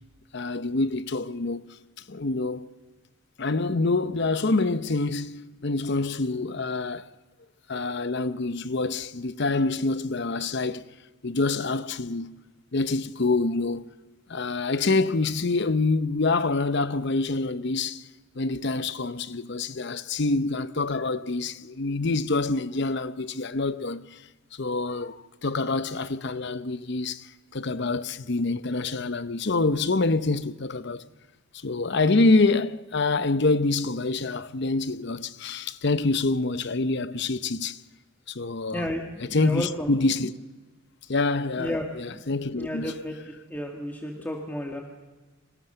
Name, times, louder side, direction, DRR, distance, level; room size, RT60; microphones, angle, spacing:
voice 1, 0.3-1.7 2.1-2.7 3.4-7.0 7.7-10.8 11.2-12.3 12.7-13.9 14.3-18.1 18.3-24.2 24.5-31.0 31.5-37.8 38.3-38.9 39.2-40.3 41.1-43.2, left 3 dB, 50° left, 0.8 m, -26 dB
voice 2, 38.7-39.9 41.6-41.8 42.1-42.2 42.5-44.8, left 1 dB, 10° left, 1.8 m, -32 dB
28.5 x 25.0 x 6.8 m
head